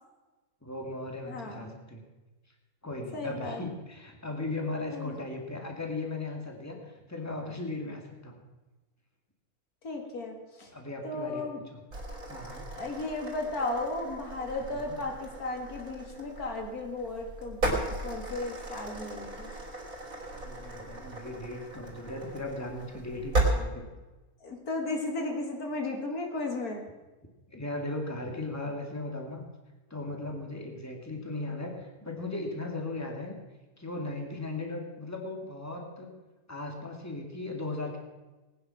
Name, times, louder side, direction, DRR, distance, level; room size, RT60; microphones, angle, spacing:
voice 1, 0.6-2.0 2.8-8.4 10.7-11.5 11.7-11.8 12.3-12.7 14.7-15.0 20.3-23.8 27.5-29.4 29.9-33.4 33.8-36.1 36.5-38.0, left 2 dB, 10° left, 1 dB, 2.2 m, -37 dB
voice 2, 1.3-1.8 3.1-3.6 4.9-5.1 9.8-10.7 11.0-11.6 12.7-19.5 24.4-26.8, left 2 dB, 90° left, 2 dB, 2.6 m, -35 dB
sound 1, 11.9-23.5, right 2 dB, 70° right, 3.9 m, -36 dB
19.5 x 9.7 x 5.9 m, 1.2 s
omnidirectional pair, 1.5 m